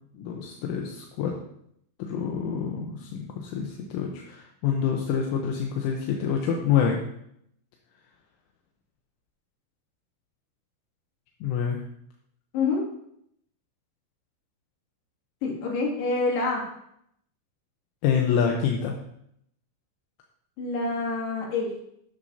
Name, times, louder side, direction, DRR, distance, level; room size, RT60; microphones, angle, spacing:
voice 1, 0.1-1.3 2.0-7.0 11.4-11.8 18.0-19.0, left 7 dB, 80° left, 1 dB, 3.3 m, -27 dB
voice 2, 12.5-12.9 15.4-16.7 20.6-21.7, left 3 dB, 60° left, -3 dB, 4.2 m, -27 dB
11.5 x 10.5 x 2.8 m, 0.73 s
omnidirectional pair, 5.7 m